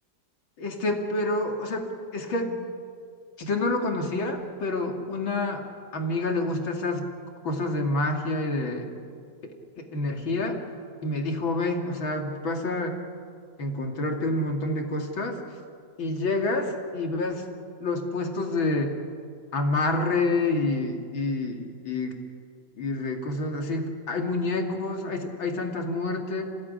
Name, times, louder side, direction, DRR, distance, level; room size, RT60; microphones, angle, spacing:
voice 1, 0.6-2.6 3.4-5.6 5.9-7.0 7.4-8.9 9.4-10.6 11.0-13.0 13.6-15.4 16.0-17.4 17.8-18.9 19.5-22.1 22.8-26.4, left 2 dB, 80° left, 3 dB, 3.2 m, -28 dB
27.0 x 17.5 x 9.7 m, 2.2 s
omnidirectional pair, 2.1 m